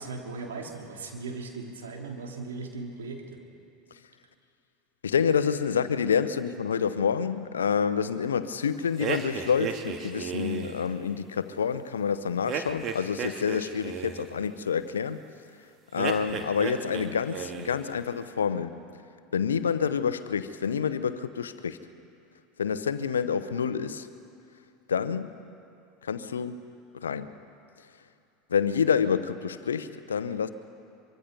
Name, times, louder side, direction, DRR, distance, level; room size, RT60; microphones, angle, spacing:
voice 1, 0.0-3.4, right 3 dB, 75° right, 1 dB, 3.3 m, -38 dB
voice 2, 5.0-15.2 15.9-18.8 19.3-21.8 22.6-24.1 24.9-25.3 26.0-26.7 27.0-27.3 28.5-30.5, left 7 dB, 80° left, 13 dB, 0.9 m, -28 dB
sound 1, 9.0-10.8 12.5-14.3 15.9-17.1 17.3-17.8, right 7 dB, 40° right, 2.0 m, -34 dB
24.5 x 24.5 x 5.4 m, 2.5 s
hypercardioid pair, 80°, 0 cm